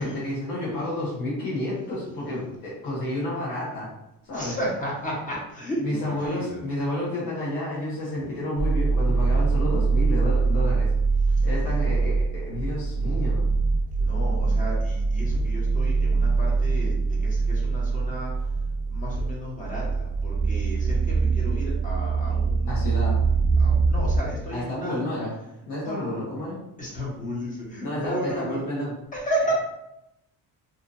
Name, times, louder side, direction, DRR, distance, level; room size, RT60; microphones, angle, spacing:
voice 1, 0.0-3.9 4.2-4.5 5.8-10.9 11.4-13.5 22.7-23.2 24.5-25.3 25.7-26.6 27.8-28.9, left 1 dB, 70° left, -6 dB, 1.1 m, -30 dB
voice 2, 4.3-6.6 8.1-8.2 14.0-18.3 18.9-23.2 23.6-25.0 25.8-26.2 26.8-28.6 29.1-29.5, right 1 dB, 20° left, -4 dB, 1.1 m, -33 dB
sound 1, 8.6-24.2, right 4 dB, 20° right, 0.7 m, -23 dB
2.7 x 2.4 x 2.6 m, 0.85 s
cardioid pair, 110°, 35 cm